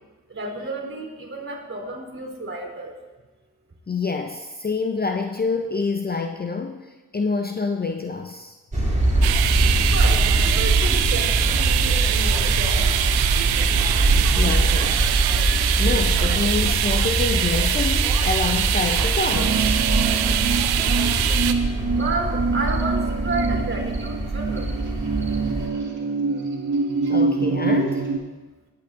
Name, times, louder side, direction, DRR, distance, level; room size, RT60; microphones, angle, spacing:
voice 1, 0.3-2.9 9.8-13.0 13.5-13.6 21.9-24.7 26.9-27.0, right 2 dB, 35° right, 0 dB, 3.4 m, -31 dB
voice 2, 3.9-8.6 14.3-15.2 15.8-19.8 27.1-28.0, left 4 dB, 25° left, 5 dB, 0.7 m, -27 dB
sound 1, 8.7-25.7, right 2 dB, 20° right, 3.0 m, -23 dB
sound 2, 9.2-21.5, right 11 dB, 85° right, 0.6 m, -24 dB
sound 3, 19.3-28.2, right 4 dB, 55° right, 2.3 m, -25 dB
19.0 x 7.7 x 2.6 m, 1.2 s
supercardioid pair, 45°, 36 cm